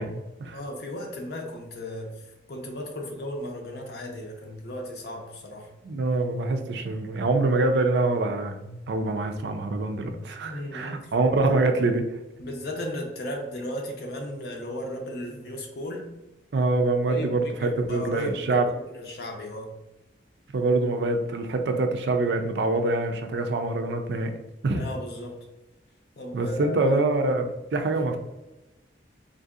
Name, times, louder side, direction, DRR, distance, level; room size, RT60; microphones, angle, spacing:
voice 1, 0.0-0.6 5.8-12.0 16.5-18.7 20.5-24.3 24.6-24.9 26.3-28.2, right 2 dB, 70° right, 5 dB, 0.4 m, -25 dB
voice 2, 0.5-2.1 2.5-5.7 10.4-11.0 11.4-11.5 12.4-16.1 17.1-19.7 24.7-25.4 26.2-27.0 27.9-28.0, left 1 dB, 60° left, 1 dB, 0.5 m, -35 dB
3.7 x 2.6 x 2.4 m, 1.0 s
head